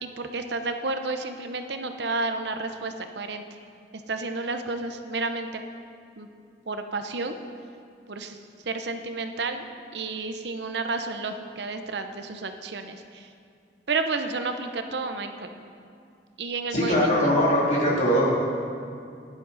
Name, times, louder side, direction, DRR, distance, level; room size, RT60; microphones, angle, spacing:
voice 1, 0.0-3.4 4.1-5.6 6.2-6.3 6.7-7.3 8.1-8.4 8.7-9.6 9.9-13.3 13.9-15.5 16.4-17.3 17.7-18.0, right 3 dB, 75° right, 7 dB, 0.8 m, -31 dB
voice 2, 16.7-18.3, equal, 40° left, -5 dB, 2.8 m, -21 dB
15.0 x 10.5 x 4.1 m, 2.3 s
head